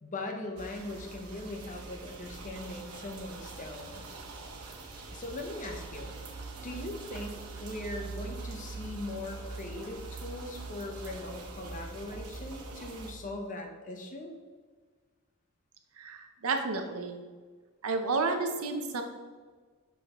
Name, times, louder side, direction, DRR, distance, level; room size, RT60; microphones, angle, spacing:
voice 1, 0.0-4.0 5.1-6.1 6.6-14.3, left 2 dB, 35° left, 3 dB, 0.8 m, -40 dB
sound 1, 0.6-13.1, right 3 dB, 85° right, 1.0 m, -43 dB
voice 2, 16.0-17.2 17.8-19.0, right 3 dB, 70° right, 5 dB, 0.7 m, -31 dB
6.2 x 5.4 x 3.0 m, 1.5 s
head